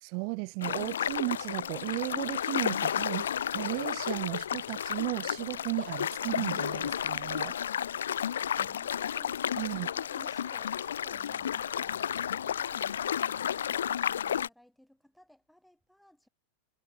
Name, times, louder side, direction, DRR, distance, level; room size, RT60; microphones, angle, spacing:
voice 1, 0.0-3.3 3.5-7.6 9.6-9.9, right 40 dB or more, 45° right, 0.3 m, -35 dB
sound 1, 0.6-14.5, left 9 dB, 65° left, 0.4 m, -32 dB
sound 2, 5.2-10.5, right 7 dB, 70° right, 7.5 m, -74 dB
voice 2, 8.6-16.3, equal, ahead, 2.9 m, -58 dB
figure-of-eight pair, 90°, 0 cm